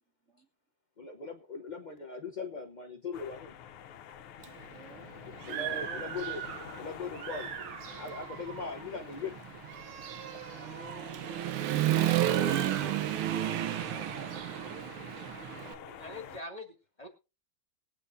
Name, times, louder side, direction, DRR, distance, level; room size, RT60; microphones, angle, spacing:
voice 1, 1.0-3.6 5.3-6.4 6.8-7.5 7.9-9.4, left 4 dB, 75° left, 4 dB, 0.4 m, -40 dB
sound 1, 3.1-16.4, left 9 dB, 90° left, 1.7 m, -48 dB
Human voice / Motorcycle, 4.4-4.5 5.0-6.8 7.1-15.7, right 12 dB, 85° right, 1.7 m, -33 dB
voice 2, 4.7-5.2 5.7-6.1 10.5-11.5 13.7-16.4, equal, 40° right, 1 dB, 2.2 m, -52 dB
voice 3, 15.9-17.1, left 2 dB, 20° left, 3 dB, 2.1 m, -44 dB
21.0 x 8.8 x 2.6 m, 0.29 s
omnidirectional pair, 2.3 m